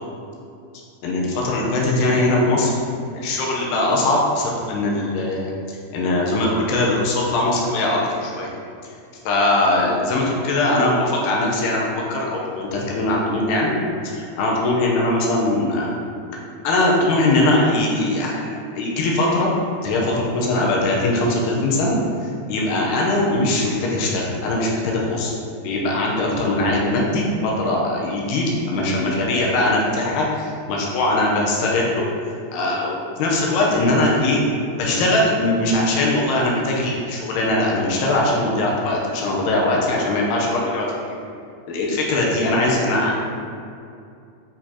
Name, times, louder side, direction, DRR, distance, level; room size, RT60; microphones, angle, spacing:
voice 1, 1.0-2.7 3.1-8.5 9.3-13.7 14.1-15.9 16.6-21.9 22.2-25.3 25.6-32.1 32.5-34.4 34.8-40.9 41.7-43.2, left 2 dB, 75° left, -3 dB, 2.8 m, -21 dB
9.8 x 4.4 x 2.9 m, 2.5 s
omnidirectional pair, 4.9 m